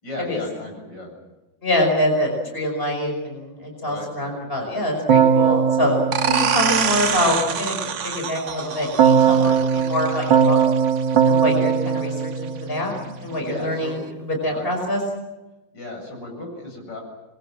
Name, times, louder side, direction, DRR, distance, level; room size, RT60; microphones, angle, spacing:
voice 1, 0.0-1.1 3.8-4.3 5.4-5.6 9.3-9.6 13.4-13.9 14.5-14.7 15.7-17.0, left 2 dB, 70° left, 1 dB, 8.3 m, -35 dB
voice 2, 1.6-6.0 6.2-9.5 9.9-10.6 11.2-14.0 14.4-15.0, left 1 dB, 30° left, 2 dB, 5.7 m, -25 dB
Keyboard (musical), 5.1-7.4 9.0-13.3, right 7 dB, 75° right, 2.2 m, -19 dB
sound 1, 6.1-11.5, right 7 dB, 50° right, 1.1 m, -26 dB
26.0 x 23.0 x 7.4 m, 1.1 s
omnidirectional pair, 2.0 m